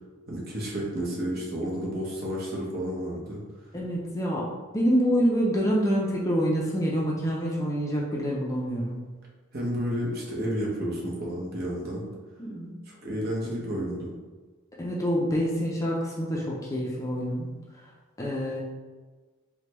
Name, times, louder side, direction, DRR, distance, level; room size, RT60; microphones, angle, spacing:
voice 1, 0.3-3.4 9.5-12.0 12.9-14.1, equal, 50° right, -4 dB, 0.8 m, -31 dB
voice 2, 3.7-4.5 4.7-9.0 12.4-12.8 14.8-17.5 18.2-18.6, equal, 15° left, -4 dB, 0.4 m, -26 dB
3.2 x 2.1 x 2.9 m, 1.4 s
head